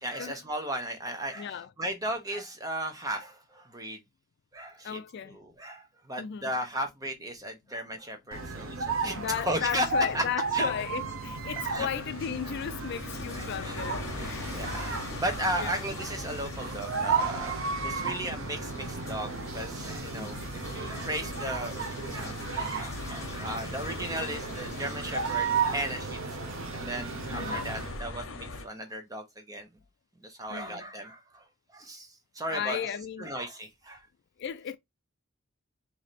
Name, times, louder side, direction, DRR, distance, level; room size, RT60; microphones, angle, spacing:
voice 1, 0.0-4.0 4.5-5.0 5.3-9.9 10.1-10.2 10.5-10.7 11.7-11.9 12.4-12.5 13.3-13.8 14.1-20.4 20.7-29.7 30.2-31.4 31.7-32.1 32.3-32.9 33.2-34.0, right 1 dB, 15° right, 0.9 m, -36 dB
voice 2, 1.4-1.7 4.8-5.4 6.2-6.5 9.1-14.6 15.6-15.8 20.1-20.4 27.3-27.7 30.5-30.8 32.5-33.4 34.4-34.8, left 8 dB, 55° left, 0.4 m, -35 dB
sound 1, 8.3-28.0, right 4 dB, 70° right, 0.9 m, -34 dB
sound 2, 11.4-28.7, left 2 dB, 75° left, 0.9 m, -43 dB
sound 3, 12.5-28.4, left 2 dB, 15° left, 1.2 m, -49 dB
3.2 x 2.8 x 4.1 m
head